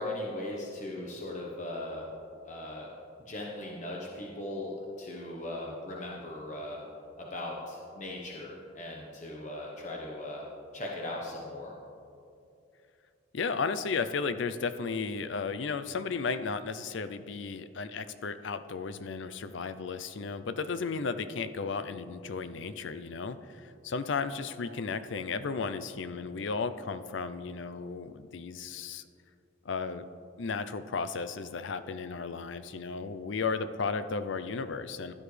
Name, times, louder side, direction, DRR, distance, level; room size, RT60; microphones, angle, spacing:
voice 1, 0.0-2.1 2.4-2.9 3.2-6.8 7.2-10.4 10.7-11.7, left 1 dB, 35° left, -2 dB, 1.1 m, -38 dB
voice 2, 13.3-29.0 29.6-30.0 30.4-35.1, left 4 dB, 65° left, 12 dB, 0.5 m, -34 dB
16.0 x 10.5 x 3.3 m, 2.6 s
head